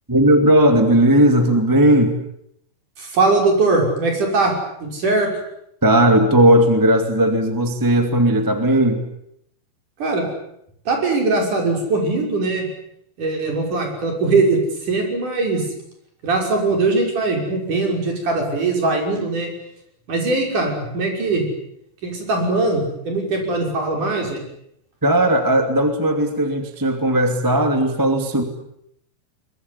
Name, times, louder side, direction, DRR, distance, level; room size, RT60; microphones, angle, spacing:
voice 1, 0.1-2.1 5.8-9.0 25.0-28.4, right 1 dB, 5° right, 6 dB, 1.5 m, -16 dB
voice 2, 3.0-4.5 4.8-5.3 10.0-10.2 10.9-12.7 13.2-15.7 16.2-19.5 20.1-21.5 22.0-24.4, right 3 dB, 45° right, 2 dB, 7.2 m, -20 dB
23.5 x 22.0 x 9.8 m, 0.74 s
omnidirectional pair, 5.0 m